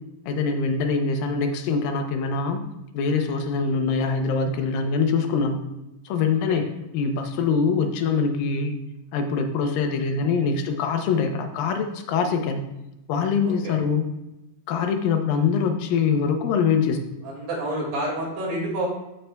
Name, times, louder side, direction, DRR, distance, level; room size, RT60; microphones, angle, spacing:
voice 1, 0.3-2.6 2.9-5.6 6.1-6.6 6.9-8.8 9.1-12.6 13.1-14.1 14.7-17.0, left 5 dB, 90° left, 5 dB, 2.5 m, -23 dB
voice 2, 13.5-13.8 17.2-18.9, right 1 dB, 85° right, -2 dB, 3.8 m, -29 dB
13.0 x 5.6 x 2.3 m, 0.90 s
omnidirectional pair, 3.9 m